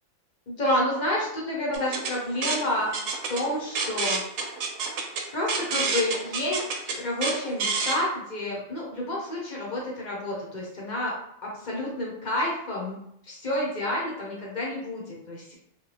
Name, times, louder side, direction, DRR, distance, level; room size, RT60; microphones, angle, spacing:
voice 1, 0.5-2.9 3.3-4.2 5.3-11.1 11.5-13.0 13.2-15.5, left 1 dB, 35° left, -3 dB, 1.0 m, -29 dB
sound 1, 1.7-8.0, right 4 dB, 75° right, 0.9 m, -29 dB
3.2 x 2.3 x 3.2 m, 0.73 s
omnidirectional pair, 1.4 m